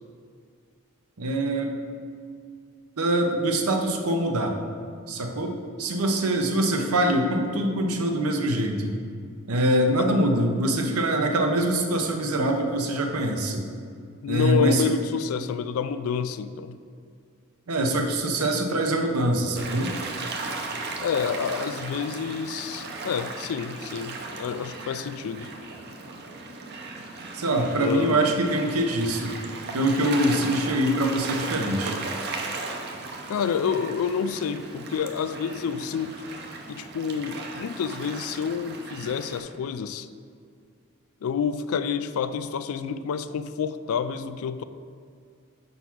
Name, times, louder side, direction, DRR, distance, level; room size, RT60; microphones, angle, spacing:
voice 1, 1.2-1.8 3.0-4.5 5.1-9.0 9.5-13.6 14.2-14.9 17.7-19.9 27.3-29.3 29.7-32.0, right 1 dB, 85° right, 3 dB, 0.8 m, -24 dB
voice 2, 14.2-16.8 21.0-25.5 27.8-28.4 33.3-36.1 36.7-40.1 41.2-44.6, left 7 dB, 75° left, 12 dB, 0.3 m, -28 dB
Gull seagull / Waves surf, 19.6-39.4, right 3 dB, 45° right, 0.6 m, -36 dB
5.6 x 4.0 x 6.0 m, 2.2 s
head